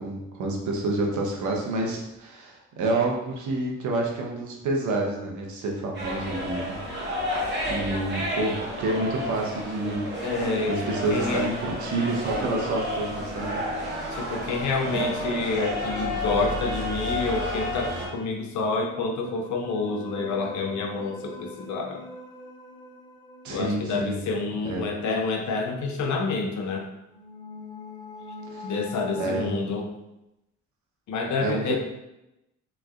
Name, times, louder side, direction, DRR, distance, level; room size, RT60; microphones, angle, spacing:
voice 1, 0.0-6.8 7.7-10.1 10.7-13.6 14.1-14.3 23.4-24.2 24.6-24.8 28.5-28.7 29.2-29.7 31.4-31.8, right 2 dB, 75° right, 0 dB, 0.8 m, -28 dB
sound 1, 5.9-18.1, equal, 35° right, 1.3 m, -31 dB
voice 2, 10.2-10.7 11.1-11.5 14.1-22.0 23.5-26.9 28.6-29.9 31.1-31.8, left 4 dB, 70° left, 2 dB, 0.7 m, -28 dB
sound 2, 11.9-16.6 18.6-24.9 27.1-29.5, left 1 dB, 15° left, 0.5 m, -43 dB
3.5 x 3.1 x 2.4 m, 0.92 s
cardioid pair, 90°, 30 cm